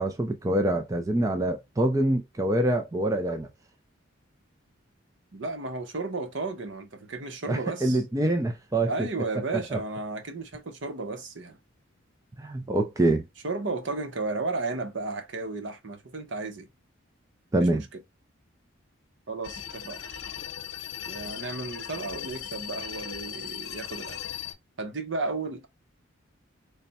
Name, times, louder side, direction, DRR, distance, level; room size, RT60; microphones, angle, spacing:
voice 1, 0.0-3.5 7.5-8.9 9.5-9.8 12.4-13.2 17.5-17.8, right 1 dB, 15° right, 0.4 m, -25 dB
voice 2, 5.3-8.0 8.9-11.6 13.4-16.7 17.6-17.9 19.3-20.0 21.1-24.2 24.8-25.7, right 3 dB, 65° right, 0.8 m, -33 dB
sound 1, 19.4-24.5, left 8 dB, 90° left, 0.8 m, -38 dB
3.3 x 2.1 x 4.0 m
head